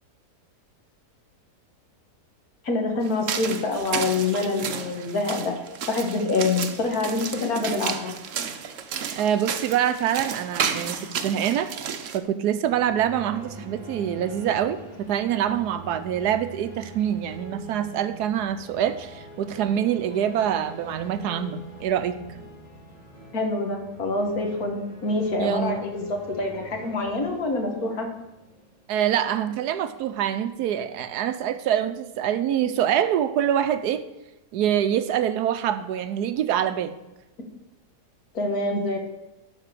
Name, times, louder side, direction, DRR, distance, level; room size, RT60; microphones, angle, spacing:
voice 1, 2.6-5.5 5.9-8.1 23.3-28.1 38.3-39.1, left 3 dB, 60° left, 3 dB, 2.0 m, -26 dB
sound 1, 3.0-12.2, right 7 dB, 55° right, 1.0 m, -32 dB
voice 2, 9.2-11.0 11.2-11.7 12.1-14.8 15.1-22.1 25.4-25.8 28.9-34.1 34.5-36.9, right 10 dB, 75° right, 11 dB, 1.1 m, -25 dB
sound 2, 12.6-29.5, right 1 dB, 25° left, 2.7 m, -44 dB
11.5 x 4.2 x 6.6 m, 0.99 s
omnidirectional pair, 1.8 m